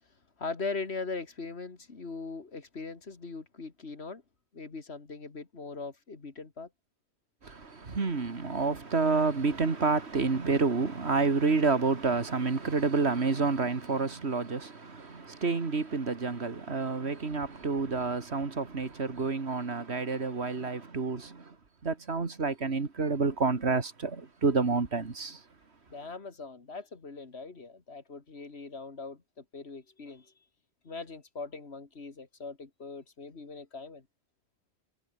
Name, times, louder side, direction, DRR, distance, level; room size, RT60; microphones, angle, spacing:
voice 1, 0.4-4.2 4.5-6.7 25.9-30.3 30.8-34.0, left 4 dB, 70° left, 2.5 m, -40 dB
voice 2, 7.4-21.6 21.8-25.4, right 4 dB, 75° right, 2.4 m, -29 dB
omnidirectional pair, 1.1 m